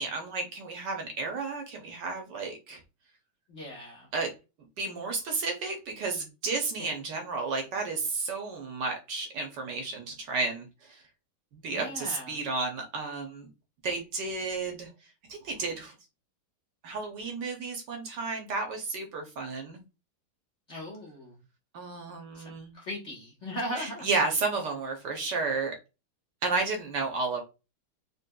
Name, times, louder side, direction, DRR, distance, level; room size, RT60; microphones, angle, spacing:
voice 1, 0.0-2.8 4.1-4.3 4.8-11.0 11.5-13.5 13.8-15.9 16.8-19.8 21.7-22.8 23.8-25.8 26.4-27.4, right 3 dB, 65° right, 3 dB, 1.2 m, -32 dB
voice 2, 3.5-4.1 6.8-6.9 11.7-12.4 20.7-21.4 22.3-24.1, equal, 45° left, -3 dB, 1.0 m, -38 dB
4.3 x 3.2 x 2.2 m, 0.28 s
omnidirectional pair, 2.2 m